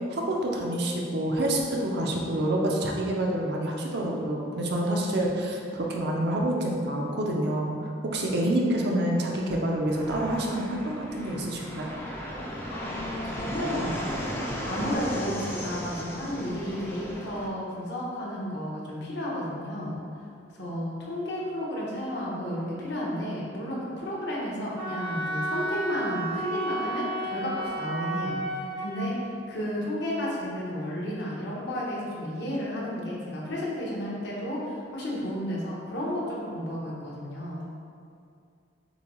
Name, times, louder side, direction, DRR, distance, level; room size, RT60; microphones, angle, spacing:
voice 1, 0.1-7.7 8.1-11.9, right 1 dB, 60° right, -1 dB, 0.6 m, -27 dB
Fixed-wing aircraft airplane, 9.8-17.5, equal, 15° left, 0.4 m, -35 dB
voice 2, 12.7-14.4 14.7-20.0 20.5-28.4 28.8-29.1 29.5-37.7, equal, 65° left, -5 dB, 1.0 m, -32 dB
Wind instrument woodwind instrument, 24.8-29.0, right 1 dB, 85° right, 1.1 m, -32 dB
6.7 x 2.3 x 3.0 m, 2.4 s
head